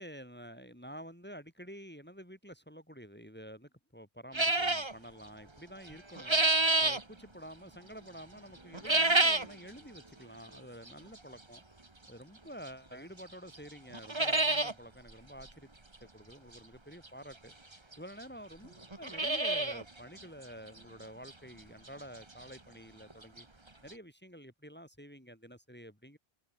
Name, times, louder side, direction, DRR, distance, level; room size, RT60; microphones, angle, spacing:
voice 1, 0.0-6.4 6.8-11.6 12.1-15.7 16.0-17.5 18.0-23.5 23.8-26.2, equal, 10° left, 6.2 m, -49 dB
sound 1, 4.3-4.9 5.9-7.0 8.7-9.6 10.0-10.1 10.9-11.0 12.7-12.8 13.2-13.3 13.6-13.7 13.9-14.7 15.1-15.2 15.4-15.5 17.1-17.2 17.9-18.0 18.2-18.3 18.8-19.8 20.2-20.3 20.8-20.9 21.3-21.4 23.1-23.2 23.4-23.5 23.9-24.0, right 2 dB, 25° right, 1.8 m, -28 dB
omnidirectional pair, 1.1 m